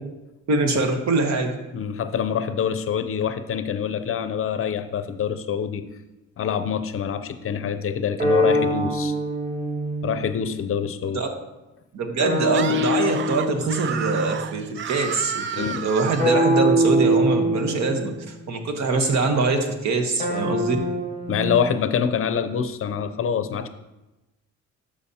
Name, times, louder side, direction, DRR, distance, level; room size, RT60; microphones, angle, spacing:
voice 1, 0.5-1.5 11.1-11.3 11.9-20.8, right 3 dB, 65° right, 4 dB, 1.2 m, -23 dB
voice 2, 1.7-5.8 6.4-9.1 10.0-11.2 15.6-15.9 21.3-23.7, left 7 dB, 45° left, 10 dB, 0.6 m, -25 dB
sound 1, 8.2-10.5 12.2-14.5 16.2-18.4 20.2-21.6, equal, 25° right, 1.6 m, -24 dB
Screaming, 12.5-16.4, right 8 dB, 40° right, 0.4 m, -32 dB
12.0 x 5.1 x 2.8 m, 1.0 s
cardioid pair, 90°, 30 cm